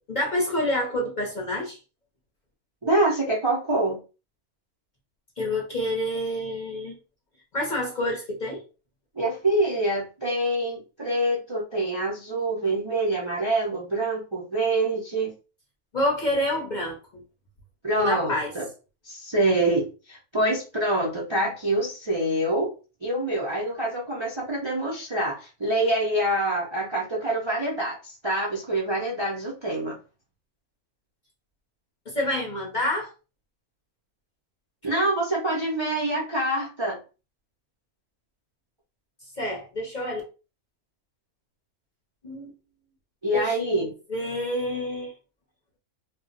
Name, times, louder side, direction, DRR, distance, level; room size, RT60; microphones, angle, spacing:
voice 1, 0.1-1.8 5.4-7.0 7.5-8.6 15.9-17.2 18.0-18.5 32.1-33.1 39.4-40.2 42.2-42.5 43.3-45.1, left 1 dB, 45° left, -1 dB, 0.7 m, -28 dB
voice 2, 2.8-4.0 9.2-15.3 17.8-18.7 19.0-22.7 23.0-30.0 34.8-37.0 43.2-43.9, right 1 dB, 45° right, -3 dB, 0.3 m, -26 dB
2.5 x 2.0 x 3.7 m, 0.33 s
omnidirectional pair, 1.6 m